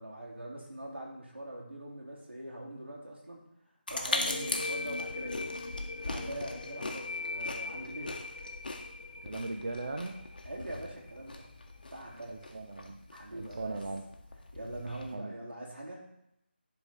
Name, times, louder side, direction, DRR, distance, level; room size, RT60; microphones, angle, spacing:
voice 1, 0.0-3.4 3.9-5.5 6.1-8.1 10.4-11.5 11.9-12.5 13.1-13.8 14.5-16.0, right 1 dB, 75° right, -3 dB, 2.5 m, -42 dB
sound 1, 3.9-15.2, left 2 dB, 55° left, 1.0 m, -40 dB
sound 2, 4.1-11.5, left 3 dB, 40° left, 0.5 m, -41 dB
voice 2, 9.2-10.3 12.3-13.0 13.3-14.1 15.1-15.3, right 3 dB, 40° right, 3 dB, 0.5 m, -38 dB
10.5 x 3.7 x 4.1 m, 0.80 s
figure-of-eight pair, 170°, 6 cm